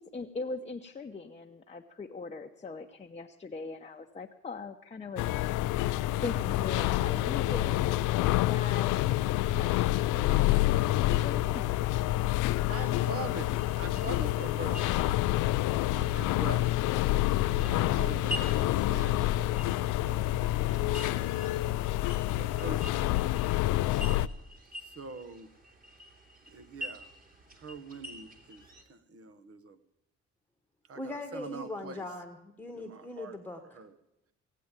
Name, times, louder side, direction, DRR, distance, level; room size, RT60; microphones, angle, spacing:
voice 1, 0.0-5.2 6.2-11.7, left 4 dB, 20° left, 3 dB, 0.9 m, -41 dB
sound 1, 5.2-24.3, left 16 dB, 90° left, 0.5 m, -28 dB
voice 2, 12.7-14.9 15.9-16.7 17.2-19.2 20.1-20.4 20.7-21.1 22.4-23.1 23.9-24.3 24.8-25.5 26.5-27.1 27.6-28.6 28.9-29.8 30.9-32.0 32.7-33.4 33.7-33.9, right 4 dB, 50° right, 12 dB, 1.2 m, -43 dB
sound 2, 12.9-28.8, equal, 30° right, 2.6 m, -47 dB
voice 3, 30.9-33.8, left 2 dB, 5° left, 4 dB, 1.3 m, -40 dB
17.5 x 8.4 x 9.0 m, 0.88 s
cardioid pair, 90°, 30 cm